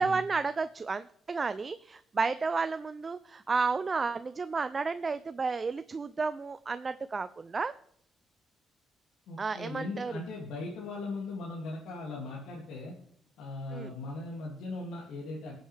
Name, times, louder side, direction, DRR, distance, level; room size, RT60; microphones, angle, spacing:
voice 1, 0.0-7.7 9.4-10.1 13.7-13.9, right 4 dB, 35° right, 13 dB, 0.4 m, -32 dB
voice 2, 9.3-12.9 13.4-15.5, left 2 dB, 85° left, -3 dB, 2.5 m, -39 dB
22.0 x 7.7 x 3.4 m, 0.70 s
cardioid pair, 90°, 0 cm